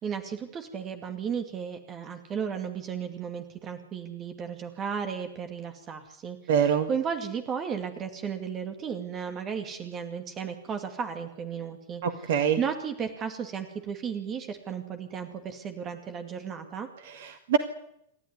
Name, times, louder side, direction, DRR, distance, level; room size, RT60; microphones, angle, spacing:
voice 1, 0.0-6.4 6.9-12.0 12.3-16.9, right 7 dB, 30° right, 6 dB, 2.4 m, -34 dB
voice 2, 6.5-6.9 12.0-12.6 17.0-17.6, right 8 dB, 55° right, 8 dB, 1.8 m, -25 dB
28.5 x 13.0 x 9.7 m, 0.76 s
figure-of-eight pair, 90°, 0 cm